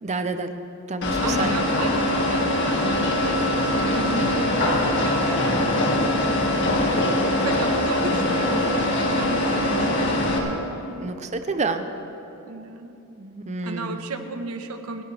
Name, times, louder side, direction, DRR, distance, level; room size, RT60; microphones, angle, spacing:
voice 1, 0.0-1.5 8.0-8.4 11.0-11.9 13.2-14.0, right 3 dB, 30° right, 8 dB, 0.6 m, -29 dB
sound 1, 1.0-10.4, left 1 dB, 55° left, 2.0 m, -22 dB
voice 2, 1.2-5.4 5.7-6.0 7.3-11.1 12.5-13.0 13.6-15.0, right 2 dB, 85° right, 6 dB, 1.2 m, -34 dB
29.0 x 10.5 x 3.4 m, 2.9 s
head